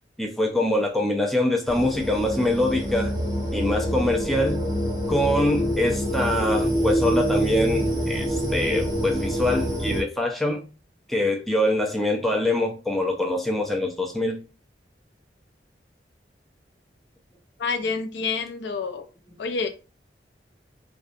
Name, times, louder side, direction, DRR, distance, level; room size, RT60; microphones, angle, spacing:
voice 1, 0.2-3.1 3.5-4.6 5.1-10.6 11.1-14.4 19.3-19.4, left 1 dB, ahead, 2 dB, 0.3 m, -24 dB
sound 1, 1.7-10.0, equal, 20° right, 0.9 m, -26 dB
voice 2, 17.6-19.0 19.4-19.7, left 4 dB, 75° left, 7 dB, 0.4 m, -28 dB
2.5 x 2.1 x 2.5 m, 0.33 s
head